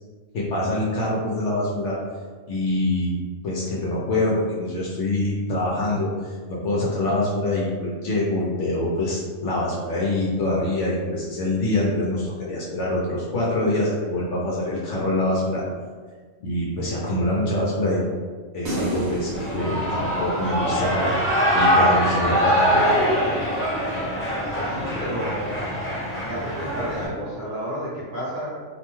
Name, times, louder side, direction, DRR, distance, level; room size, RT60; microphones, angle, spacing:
voice 1, 0.3-2.0 2.5-3.2 3.4-15.6 16.4-18.0 18.5-21.1 21.5-23.0, left 1 dB, 65° left, -5 dB, 0.8 m, -25 dB
sound 1, 18.7-21.1, right 1 dB, 75° right, 1.1 m, -31 dB
Shout / Cheering, 19.3-27.1, equal, 20° left, 0.3 m, -23 dB
voice 2, 24.5-25.6 25.9-28.6, equal, 45° right, -9 dB, 0.7 m, -31 dB
2.6 x 2.1 x 3.0 m, 1.5 s
omnidirectional pair, 1.5 m